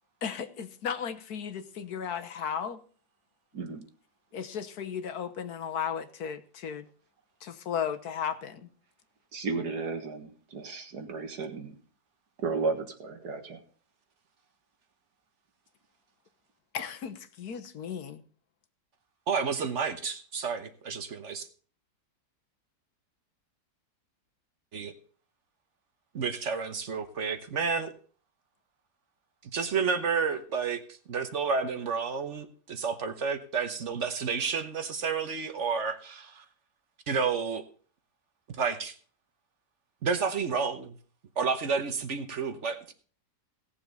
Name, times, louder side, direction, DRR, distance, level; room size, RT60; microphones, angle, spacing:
voice 1, 0.2-2.8 4.3-6.9 7.4-8.7 16.7-18.2, left 8 dB, 70° left, 1.5 m, -35 dB
voice 2, 3.5-3.8 9.3-11.7 12.4-13.6, right 4 dB, 75° right, 2.1 m, -34 dB
voice 3, 19.3-21.5 24.7-24.9 26.1-27.9 29.5-30.8 31.1-36.4 37.1-37.6 38.6-38.9 40.0-41.0 41.4-42.9, right 5 dB, 50° right, 1.3 m, -30 dB
17.5 x 7.1 x 4.0 m
omnidirectional pair, 1.7 m